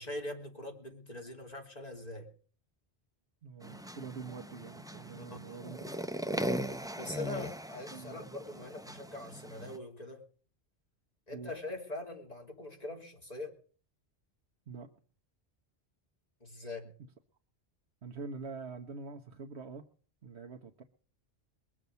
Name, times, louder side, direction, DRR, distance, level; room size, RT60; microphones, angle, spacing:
voice 1, 0.0-2.3 5.5-5.6 7.0-10.2 11.3-13.6 16.4-16.9, left 1 dB, 35° left, 1 dB, 3.4 m, -42 dB
voice 2, 3.4-5.8 7.9-8.3 11.3-11.5 14.7-14.9 18.0-19.9 20.2-20.8, right 4 dB, 80° right, 4 dB, 1.4 m, -45 dB
sound 1, 3.6-9.8, equal, 5° right, 0.5 m, -39 dB
22.0 x 7.5 x 6.9 m, 0.43 s
omnidirectional pair, 1.1 m